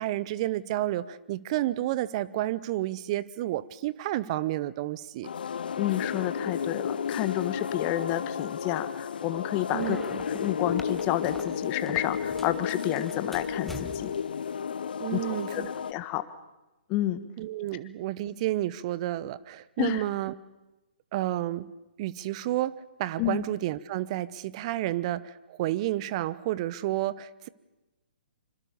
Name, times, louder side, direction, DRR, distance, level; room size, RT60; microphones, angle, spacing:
voice 1, 0.0-5.3 9.7-10.1 15.0-15.7 17.4-20.4 21.1-21.7 22.0-27.5, right 15 dB, 35° right, 18 dB, 0.9 m, -30 dB
sound 1, 5.2-15.9, left 7 dB, 60° left, 0.9 m, -33 dB
voice 2, 5.8-10.0 10.2-14.1 15.1-15.6 15.9-16.2 16.9-17.2 19.8-20.0 23.2-23.4, left 14 dB, 30° left, 12 dB, 1.5 m, -30 dB
sound 2, 9.7-12.6 12.9-14.2, left 2 dB, 5° left, 1.7 m, -43 dB
26.0 x 25.0 x 7.0 m, 1.0 s
figure-of-eight pair, 130°, 6 cm